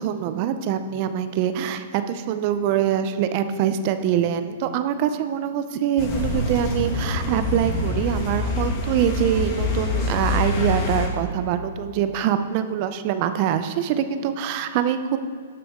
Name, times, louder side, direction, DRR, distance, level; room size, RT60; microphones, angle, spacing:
voice 1, 0.0-15.2, right 9 dB, 40° right, 10 dB, 0.5 m, -24 dB
sound 1, 6.0-11.1, left 3 dB, 35° left, 1.6 m, -25 dB
11.5 x 6.8 x 3.6 m, 2.1 s
hypercardioid pair, 150°, 0 cm